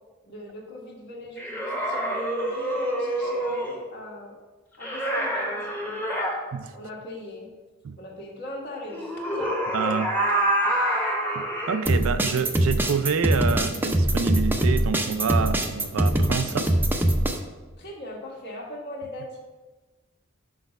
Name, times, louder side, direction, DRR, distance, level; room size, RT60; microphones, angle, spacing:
voice 1, 0.3-4.4 4.8-6.0 6.7-7.5 8.0-9.6 9.9-10.0 10.6-11.1 17.8-19.4, equal, 55° left, -1 dB, 1.6 m, -39 dB
sound 1, 1.4-3.8 4.8-6.3 8.9-11.8, right 1 dB, 10° left, 1.0 m, -27 dB
voice 2, 9.7-10.1 11.3-16.7, right 5 dB, 75° right, 10 dB, 0.4 m, -27 dB
sound 2, 11.9-17.4, right 1 dB, 10° right, 0.5 m, -22 dB
6.3 x 5.1 x 5.2 m, 1.2 s
head